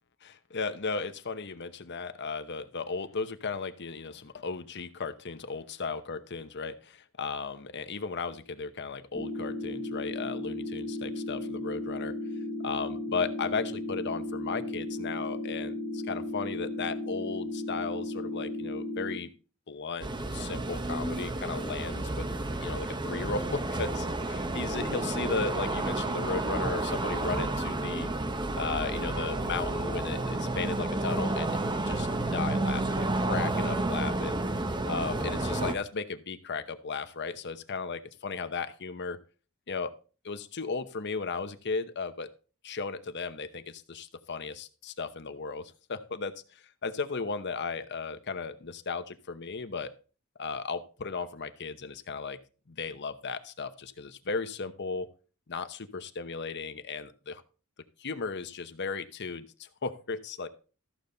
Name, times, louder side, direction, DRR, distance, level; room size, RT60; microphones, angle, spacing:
voice 1, 0.2-12.1 12.6-19.3 19.7-22.3 22.6-28.1 28.5-31.6 31.9-34.4 34.8-39.2 39.7-39.9 40.2-42.3 42.6-49.9 50.4-52.4 52.7-55.1 55.5-57.4 58.0-60.5, left 4 dB, 55° left, 11 dB, 0.9 m, -35 dB
sound 1, 9.1-19.1, left 1 dB, 60° right, 7.0 m, -35 dB
sound 2, 20.0-35.7, right 2 dB, 20° right, 0.9 m, -31 dB
14.0 x 7.0 x 3.9 m, 0.36 s
head